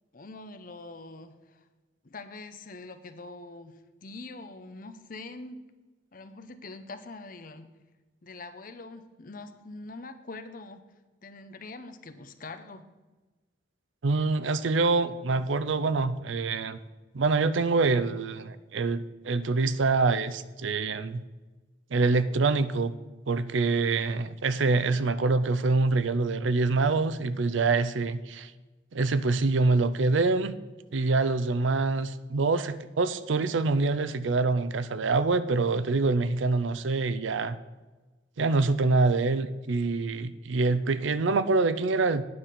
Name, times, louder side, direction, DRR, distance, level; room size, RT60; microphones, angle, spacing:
voice 1, 0.1-1.6 2.0-5.6 6.1-7.7 8.2-10.8 11.2-12.9, left 3 dB, 45° left, 9 dB, 0.7 m, -44 dB
voice 2, 14.0-16.8 17.1-21.2 21.9-22.9 23.3-28.5 28.9-30.5 30.9-37.6 38.4-42.2, right 3 dB, 80° right, 14 dB, 0.6 m, -25 dB
9.7 x 5.7 x 6.7 m, 1.2 s
head